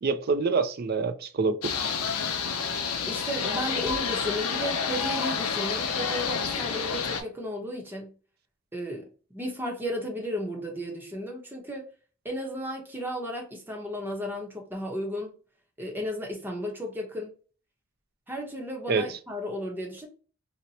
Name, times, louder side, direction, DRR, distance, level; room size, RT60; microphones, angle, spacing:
voice 1, 0.0-1.7 18.9-19.2, right 4 dB, 45° right, 0.3 m, -26 dB
sound 1, 1.6-7.2, left 6 dB, 90° left, 0.6 m, -29 dB
voice 2, 3.1-8.1 8.7-9.1 9.3-11.9 12.2-15.3 15.8-17.3 18.3-20.1, equal, 10° right, 0.7 m, -34 dB
2.8 x 2.1 x 4.0 m
head